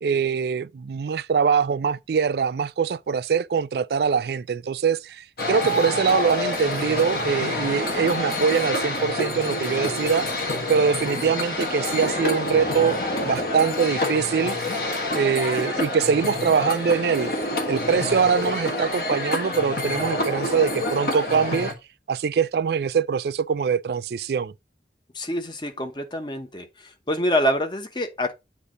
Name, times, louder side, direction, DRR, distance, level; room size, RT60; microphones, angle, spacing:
voice 1, 0.0-10.3 10.7-14.5 15.1-17.3 17.7-21.7 22.1-24.5, right 6 dB, 65° right, 0.3 m, -23 dB
sound 1, 5.4-21.7, left 1 dB, 55° left, 1.3 m, -27 dB
voice 2, 25.1-26.7 27.1-28.3, equal, 25° left, 0.9 m, -25 dB
8.2 x 2.8 x 5.0 m
head